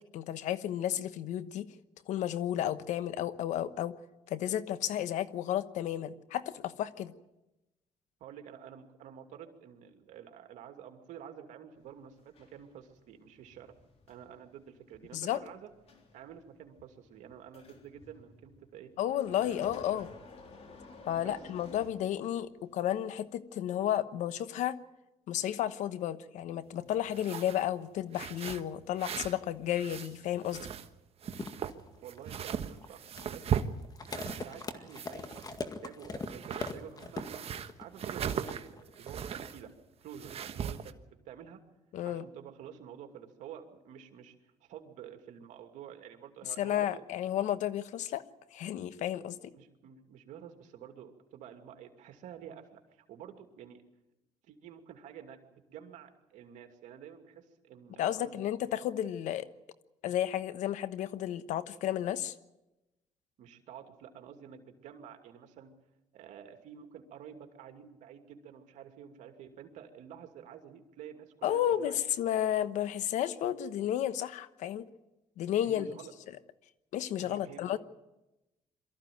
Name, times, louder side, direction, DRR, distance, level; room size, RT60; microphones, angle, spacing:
voice 1, 0.1-1.7 2.1-3.9 4.3-7.1 15.1-15.4 19.0-20.1 21.1-24.8 25.3-30.7 41.9-42.2 46.6-48.2 48.5-49.5 58.0-59.5 60.0-62.3 71.4-74.9 75.4-75.9 76.9-77.8, left 11 dB, 80° left, 13 dB, 1.1 m, -32 dB
voice 2, 8.2-13.7 14.1-15.7 16.1-18.9 19.4-20.0 21.2-21.4 32.0-33.5 34.4-37.4 37.8-39.7 40.0-41.6 42.1-44.4 44.6-47.0 49.5-53.8 54.4-58.3 63.4-65.7 66.1-72.0 75.6-76.1 77.2-77.8, right 9 dB, 80° right, 5 dB, 2.5 m, -49 dB
sound 1, 11.8-22.6 23.3-23.4, left 3 dB, 55° left, 3.7 m, -55 dB
sound 2, 27.1-27.7 28.1-29.4 29.7-30.9 31.2-34.6 34.9-35.8 36.1-39.6 40.1-40.9, right 8 dB, 55° right, 1.3 m, -38 dB
sound 3, 31.3-39.6, left 3 dB, 30° left, 2.0 m, -42 dB
23.5 x 14.5 x 9.3 m, 0.97 s
cardioid pair, 90°, 12 cm